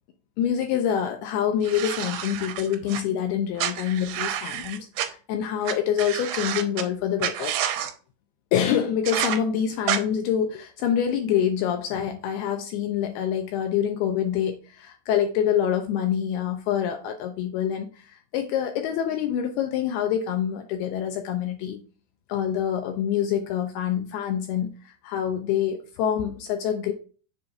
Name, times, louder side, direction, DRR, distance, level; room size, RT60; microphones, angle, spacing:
voice 1, 0.4-7.5 8.5-21.8 22.3-26.9, left 9 dB, 80° left, 4 dB, 2.3 m, -26 dB
sound 1, 1.6-3.0 3.6-5.1 5.6-5.7 6.0-6.8 7.2-7.9 9.1-9.4 9.9-10.0, right 10 dB, 90° right, 3.0 m, -29 dB
7.2 x 2.6 x 5.2 m, 0.37 s
omnidirectional pair, 5.2 m